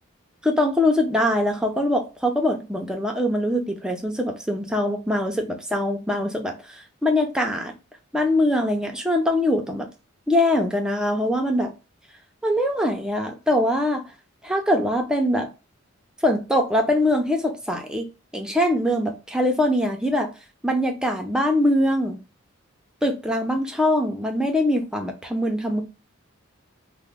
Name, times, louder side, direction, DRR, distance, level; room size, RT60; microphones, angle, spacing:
voice 1, 0.4-7.7 8.1-9.9 10.3-11.7 12.4-14.0 14.4-15.5 16.2-18.1 18.3-20.3 20.6-22.2 23.0-25.8, left 1 dB, 5° right, 0.4 m, -23 dB
2.9 x 2.0 x 3.5 m
head